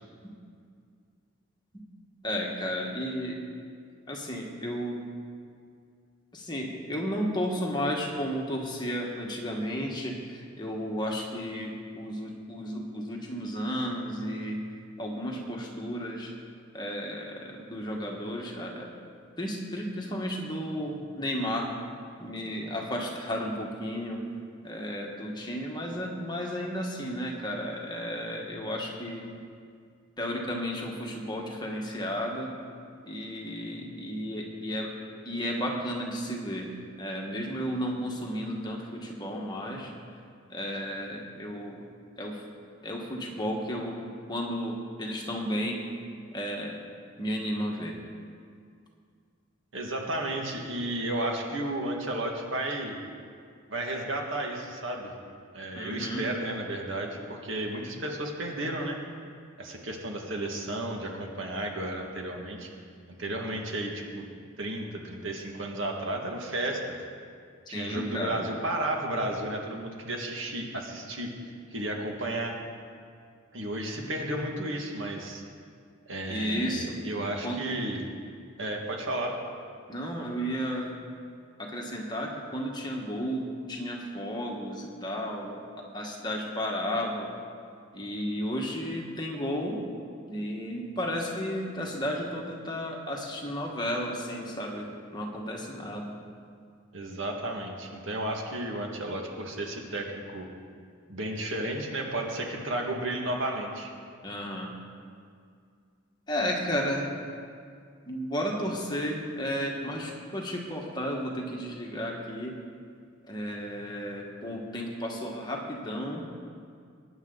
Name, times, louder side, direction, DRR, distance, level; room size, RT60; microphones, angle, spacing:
voice 1, 2.2-3.4 4.1-5.0 6.3-14.6 15.0-16.3 16.7-18.9 19.4-21.7 22.2-24.2 24.6-29.2 30.2-32.5 33.0-34.9 35.2-36.7 37.0-39.9 40.5-41.8 42.2-42.4 42.8-44.0 44.3-45.8 46.3-46.8 47.2-47.9 55.7-56.2 67.7-68.4 76.3-77.0 77.4-77.6 79.9-80.9 81.6-85.6 85.9-87.3 87.9-89.8 90.3-96.1 104.2-104.7 106.3-107.1 108.0-112.5 113.3-116.2, equal, 20° left, -1 dB, 1.7 m, -33 dB
voice 2, 49.7-53.0 53.7-55.1 55.5-59.0 59.6-62.7 63.2-64.3 64.6-66.8 67.7-71.3 71.7-72.6 73.5-75.4 76.1-78.1 78.6-79.4 96.9-100.5 101.1-103.9, right 1 dB, 65° right, 1 dB, 2.0 m, -33 dB
23.0 x 10.0 x 4.0 m, 2.2 s
head